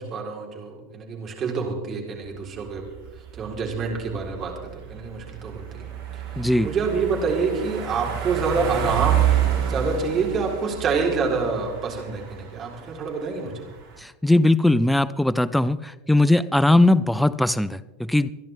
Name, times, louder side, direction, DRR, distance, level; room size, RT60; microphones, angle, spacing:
voice 1, 0.0-2.8 3.3-4.5 4.9-5.9 6.6-9.2 9.7-13.5, right 5 dB, 35° right, 0 dB, 4.0 m, -27 dB
sound 1, 2.3-14.0, right 10 dB, 65° right, 3.9 m, -29 dB
voice 2, 6.4-6.7 14.0-17.8 18.1-18.3, left 1 dB, 5° left, 17 dB, 0.5 m, -19 dB
26.5 x 11.0 x 3.6 m, 1.1 s
hypercardioid pair, 90°, 0 cm